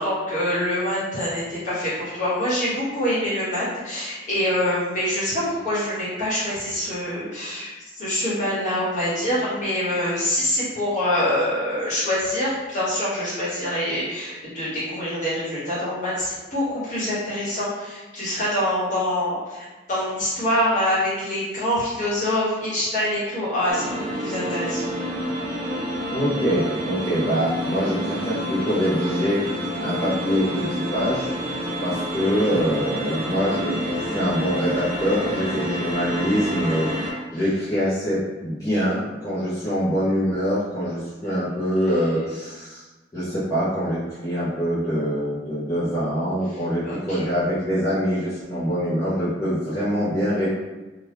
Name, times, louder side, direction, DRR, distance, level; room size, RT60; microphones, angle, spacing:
voice 1, 0.0-24.9 32.3-32.4 46.5-46.6 46.8-47.3, left 1 dB, 40° left, -10 dB, 1.3 m, -25 dB
sound 1, 23.7-37.1, equal, 30° right, 0.7 m, -28 dB
voice 2, 26.1-29.4 29.8-31.3 31.8-42.8 43.1-50.5, equal, 20° left, -13 dB, 0.8 m, -24 dB
2.7 x 2.5 x 3.3 m, 1.2 s
head